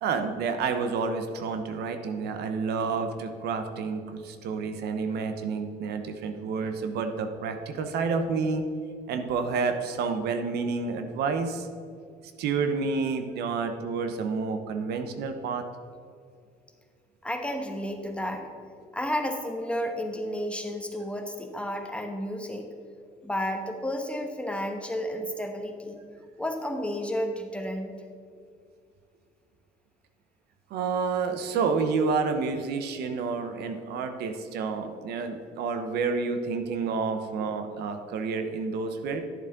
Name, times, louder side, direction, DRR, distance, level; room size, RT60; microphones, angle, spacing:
voice 1, 0.0-8.6 9.1-11.7 12.4-15.7 30.7-39.2, right 5 dB, 75° right, 7 dB, 0.9 m, -29 dB
voice 2, 17.2-18.5 18.9-22.7 23.2-26.0 26.4-27.9, equal, 5° left, 4 dB, 1.0 m, -32 dB
11.5 x 7.2 x 3.9 m, 2.2 s
cardioid pair, 110°, 17 cm